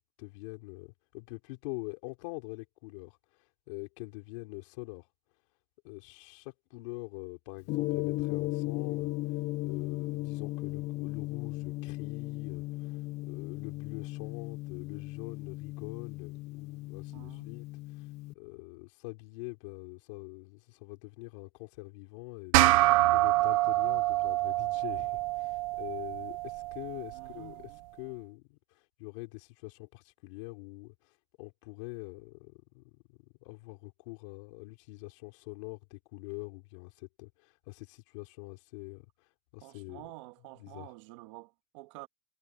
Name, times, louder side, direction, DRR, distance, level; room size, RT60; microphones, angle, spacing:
voice 1, 0.0-3.2 3.7-5.1 5.8-9.1 9.6-17.7 18.0-18.1 18.3-27.7 28.0-31.1 31.4-39.1 39.5-40.1 40.6-40.9, left 26 dB, 65° left, 4.1 m, -45 dB
Gong, 7.7-18.3, left 19 dB, 40° left, 0.5 m, -36 dB
voice 2, 17.1-17.5 27.1-27.8 39.6-42.1, right 20 dB, 65° right, 1.8 m, -49 dB
sound 1, 22.5-27.3, right 19 dB, 80° right, 0.6 m, -26 dB
supercardioid pair, 165°, 17 cm